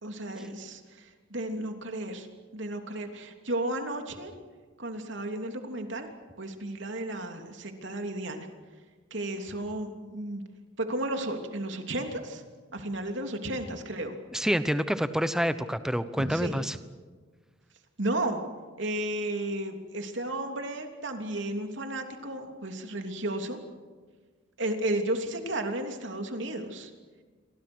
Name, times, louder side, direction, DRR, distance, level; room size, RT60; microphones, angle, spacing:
voice 1, 0.0-2.3 2.5-4.3 4.8-6.1 6.4-8.5 9.1-10.4 10.8-12.4 12.7-14.1 16.2-16.7 18.0-18.4 18.8-23.6 24.6-26.9, right 1 dB, 65° right, 5 dB, 3.1 m, -33 dB
voice 2, 14.3-16.8, equal, 5° right, 11 dB, 1.0 m, -27 dB
29.0 x 23.5 x 6.3 m, 1.5 s
head